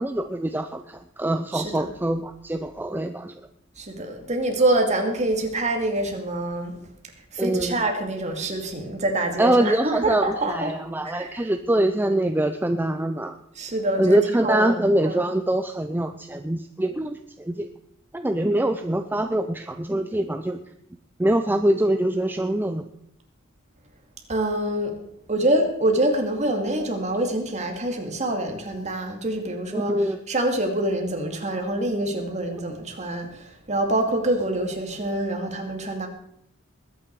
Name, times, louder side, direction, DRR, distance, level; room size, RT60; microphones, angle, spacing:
voice 1, 0.0-3.3 7.4-7.7 9.4-13.4 14.0-17.7 18.1-20.6 21.2-22.9 29.7-30.2, right 1 dB, 10° right, 8 dB, 0.5 m, -24 dB
voice 2, 1.5-1.9 3.8-6.7 7.3-10.8 11.0-11.4 13.6-15.1 24.3-25.0 25.3-30.0 30.3-36.1, right 1 dB, 35° right, 3 dB, 2.3 m, -25 dB
20.5 x 9.1 x 4.7 m, 0.75 s
head